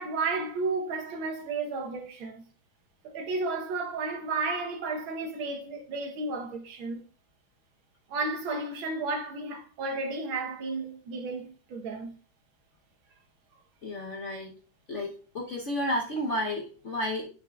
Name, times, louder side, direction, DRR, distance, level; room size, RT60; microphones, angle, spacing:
voice 1, 0.0-2.4 3.0-7.0 8.1-12.1, right 3 dB, 75° right, 1.7 m, -33 dB
voice 2, 13.8-14.5 14.9-17.3, left 1 dB, 55° left, 0.8 m, -32 dB
10.5 x 5.7 x 2.3 m
omnidirectional pair, 2.3 m